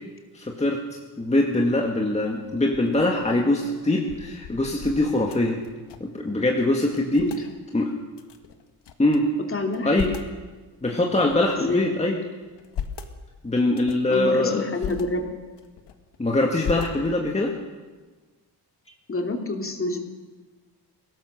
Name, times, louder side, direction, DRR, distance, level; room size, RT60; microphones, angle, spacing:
voice 1, 0.3-0.8 1.2-5.6 6.0-7.3 7.7-8.0 9.0-9.3 9.8-10.1 10.8-12.2 13.4-14.6 16.2-17.5, left 2 dB, 15° left, 0 dB, 1.9 m, -23 dB
sound 1, 2.7-6.2 6.5-6.6 6.9-7.4 8.1-9.2 9.6-10.4 11.0-11.9 12.4-13.1 13.7-14.1 14.6-15.0 15.5-16.2 16.6-17.3, left 8 dB, 80° left, 1.8 m, -38 dB
voice 2, 9.5-9.9 11.6-11.9 14.1-15.2 19.1-20.0, left 2 dB, 30° left, 3 dB, 2.8 m, -27 dB
22.5 x 17.5 x 6.6 m, 1.3 s
cardioid pair, 125°, 41 cm